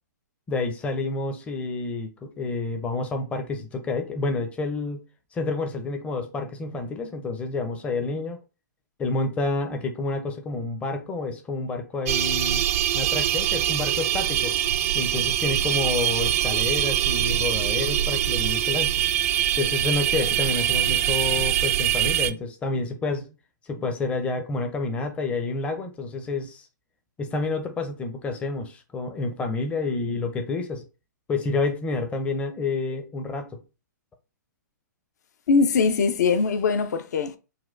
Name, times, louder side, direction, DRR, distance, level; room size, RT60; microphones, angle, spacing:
voice 1, 0.5-5.0 5.3-8.4 9.0-12.6 12.9-14.5 14.9-19.0 19.6-23.3 23.7-26.7 27.2-30.8 31.3-33.5, left 3 dB, 10° left, 0.5 m, -29 dB
sound 1, 12.1-22.3, right 12 dB, 45° right, 0.4 m, -23 dB
voice 2, 35.5-37.4, left 5 dB, 60° left, 0.6 m, -21 dB
4.1 x 2.2 x 2.5 m
hypercardioid pair, 130°, 10 cm